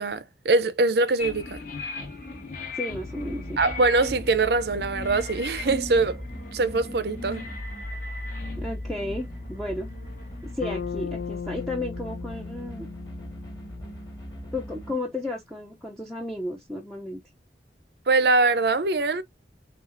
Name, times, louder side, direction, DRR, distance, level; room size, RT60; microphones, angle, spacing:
voice 1, 0.0-1.6 3.6-6.2 6.5-7.5 18.1-19.2, right 3 dB, 65° right, 0.6 m, -23 dB
sound 1, 1.2-11.1, left 3 dB, 50° left, 1.6 m, -39 dB
voice 2, 2.7-3.6 8.6-9.9 10.5-12.9 14.5-17.2, left 1 dB, ahead, 0.6 m, -33 dB
sound 2, 2.9-14.9, left 1 dB, 20° left, 1.7 m, -39 dB
Bass guitar, 10.6-14.7, left 6 dB, 75° left, 0.5 m, -37 dB
6.6 x 2.5 x 2.5 m
head